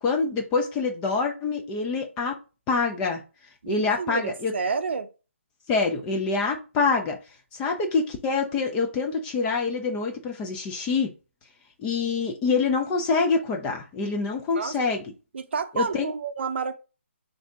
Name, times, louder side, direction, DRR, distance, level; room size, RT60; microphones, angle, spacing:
voice 1, 0.0-2.4 2.7-3.2 3.7-4.5 5.7-7.2 7.5-11.1 11.8-15.0 15.7-16.1, left 4 dB, 10° left, 0.3 m, -26 dB
voice 2, 3.6-5.1 14.5-14.7 15.3-16.8, right 5 dB, 55° right, 0.5 m, -30 dB
3.6 x 2.6 x 3.4 m
hypercardioid pair, 160°, 7 cm